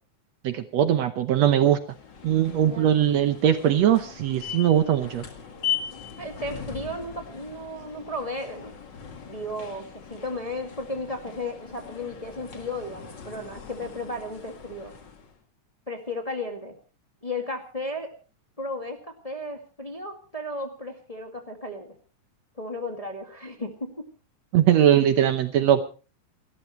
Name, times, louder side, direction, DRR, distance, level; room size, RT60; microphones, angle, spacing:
voice 1, 0.4-1.8 2.2-5.3 24.5-25.8, right 10 dB, 65° right, 9 dB, 2.0 m, -20 dB
sound 1, 1.8-15.4, left 8 dB, 40° left, 2.2 m, -39 dB
voice 2, 6.2-8.7 9.3-14.9 15.9-16.8 17.2-18.2 18.6-21.9 22.6-24.1, left 1 dB, 15° left, 3 dB, 1.8 m, -34 dB
29.0 x 13.5 x 3.1 m, 0.36 s
omnidirectional pair, 3.5 m